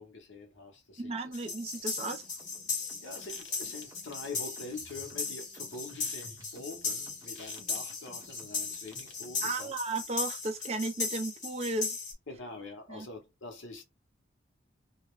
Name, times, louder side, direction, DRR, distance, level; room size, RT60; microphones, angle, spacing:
voice 1, 0.0-1.1 1.4-1.6 3.0-9.7 12.3-13.8, left 3 dB, 80° left, 0.8 m, -45 dB
voice 2, 1.0-2.2 9.4-12.0 12.9-13.1, right 3 dB, 35° right, 0.4 m, -34 dB
sound 1, 1.2-9.5, right 1 dB, 20° right, 0.7 m, -56 dB
sound 2, 1.3-12.1, left 5 dB, 40° left, 1.1 m, -37 dB
2.3 x 2.0 x 2.9 m
head